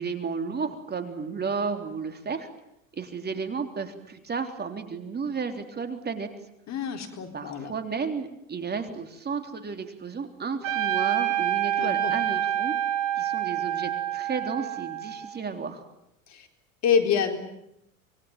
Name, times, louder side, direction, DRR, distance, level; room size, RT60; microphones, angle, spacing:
voice 1, 0.0-2.5 2.9-6.3 7.3-12.8 13.1-15.9, right 5 dB, 25° right, 7 dB, 3.6 m, -33 dB
voice 2, 6.7-7.7 11.8-12.1 16.3-16.5 16.8-17.4, left 7 dB, 40° left, 6 dB, 4.1 m, -26 dB
Trumpet, 10.6-15.3, right 11 dB, 55° right, 3.6 m, -27 dB
26.0 x 22.5 x 9.1 m, 0.80 s
hypercardioid pair, 90°, 39 cm